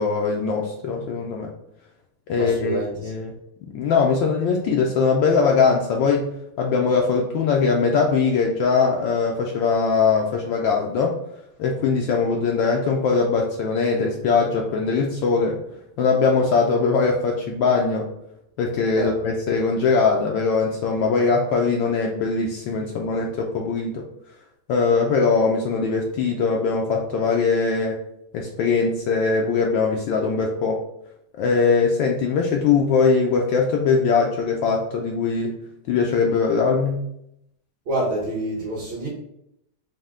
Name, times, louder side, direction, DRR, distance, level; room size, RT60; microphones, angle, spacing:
voice 1, 0.0-1.5 2.3-2.8 3.0-3.3 3.7-6.3 6.6-11.1 11.6-15.6 16.0-18.1 18.6-24.0 24.7-28.0 28.3-30.8 31.4-35.6 35.9-37.0, left 5 dB, 75° left, 0 dB, 1.2 m, -21 dB
voice 2, 2.4-3.1 19.0-19.1 37.9-39.1, right 1 dB, 65° right, -7 dB, 1.8 m, -26 dB
5.4 x 2.2 x 3.5 m, 0.79 s
omnidirectional pair, 2.3 m